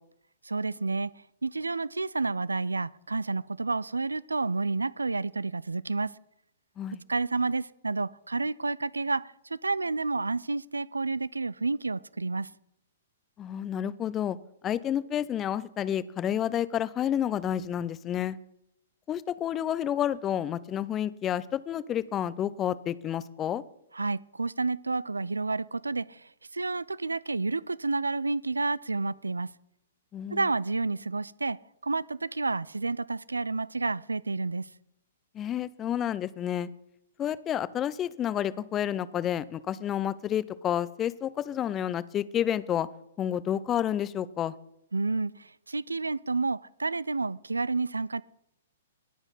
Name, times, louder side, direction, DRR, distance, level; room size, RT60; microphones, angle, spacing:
voice 1, 0.4-1.1 1.4-6.1 7.1-12.5 23.9-29.5 30.3-34.7 44.9-48.2, right 3 dB, 75° right, 22 dB, 0.3 m, -30 dB
voice 2, 13.4-14.4 14.6-18.4 19.1-23.6 30.1-30.4 35.3-36.7 37.2-42.9 43.2-44.5, left 10 dB, 20° left, 19 dB, 0.4 m, -30 dB
19.5 x 7.0 x 4.1 m, 0.78 s
figure-of-eight pair, 115°, 0 cm